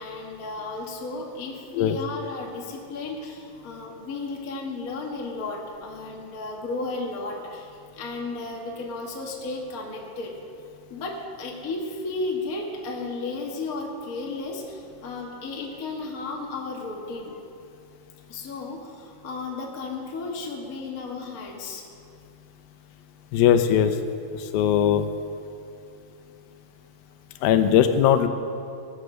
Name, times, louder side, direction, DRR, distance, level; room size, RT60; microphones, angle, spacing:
voice 1, 0.0-10.3 10.9-17.4 18.3-21.8, left 3 dB, 45° left, -1 dB, 1.2 m, -34 dB
voice 2, 23.3-24.0 24.3-25.1 27.4-28.3, left 9 dB, 85° left, 9 dB, 2.6 m, -19 dB
20.0 x 8.2 x 6.4 m, 2.6 s
omnidirectional pair, 4.1 m